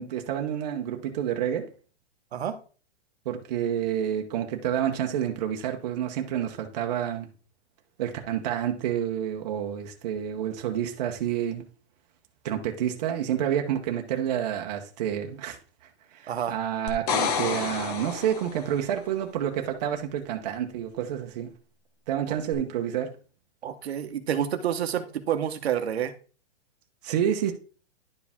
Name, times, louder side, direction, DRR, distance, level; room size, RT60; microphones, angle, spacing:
voice 1, 0.0-1.7 3.2-7.3 8.0-11.6 12.4-15.6 16.1-21.5 22.1-23.1 27.0-27.5, right 10 dB, 35° right, 1.0 m, -29 dB
voice 2, 16.3-16.6 22.3-22.4 23.6-26.1, right 9 dB, 65° right, 1.1 m, -28 dB
sound 1, 16.9-18.8 22.5-22.6, left 6 dB, 35° left, 1.0 m, -29 dB
11.0 x 4.9 x 3.6 m
hypercardioid pair, 165°, 34 cm